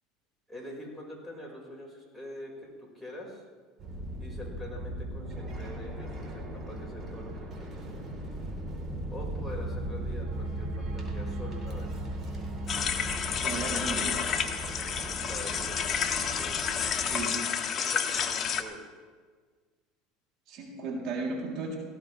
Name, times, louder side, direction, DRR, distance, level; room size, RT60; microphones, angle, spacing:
voice 1, 0.5-3.5 4.2-7.9 9.1-12.0 15.3-16.6 17.7-18.9, equal, ahead, -3 dB, 5.3 m, -44 dB
sound 1, 3.8-17.2, right 1 dB, 35° right, 3.9 m, -37 dB
sound 2, 12.7-18.6, left 7 dB, 35° left, 1.2 m, -30 dB
voice 2, 13.4-14.2 17.0-17.4 20.5-21.8, right 3 dB, 60° right, -2 dB, 3.4 m, -35 dB
18.0 x 15.0 x 3.4 m, 1.5 s
supercardioid pair, 105°, 0 cm